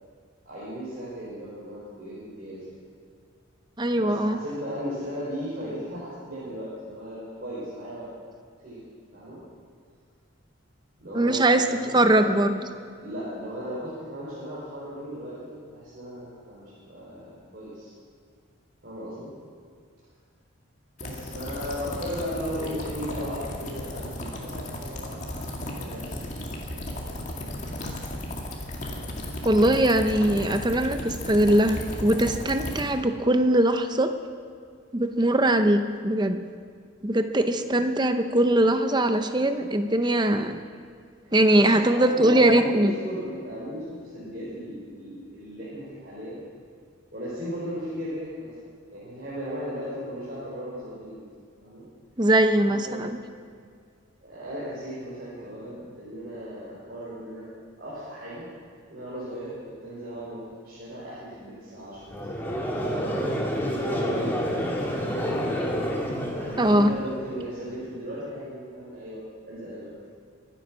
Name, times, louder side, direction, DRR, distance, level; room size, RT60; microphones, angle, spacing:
voice 1, 0.4-2.8 3.9-8.1 8.6-8.8 9.1-9.4 11.0-12.6 13.0-17.9 18.8-19.3 21.0-26.3 37.6-37.8 41.2-46.4 47.1-48.5 48.9-51.3 51.6-51.9 52.4-53.1 54.2-57.5 57.8-58.5 58.9-62.2 62.8-65.4 66.3-70.1, equal, 50° right, -9 dB, 4.7 m, -36 dB
voice 2, 3.8-4.4 11.1-11.6 11.9-12.6 29.4-34.1 34.9-36.4 37.0-40.6 41.3-42.9 52.2-53.1 66.6-66.9, right 1 dB, 20° right, 8 dB, 0.7 m, -21 dB
sound 1, 21.0-32.8, left 1 dB, 35° left, 2.1 m, -35 dB
Conversation / Crowd, 62.1-67.4, equal, 10° left, 2.1 m, -29 dB
24.0 x 9.5 x 6.2 m, 2.1 s
head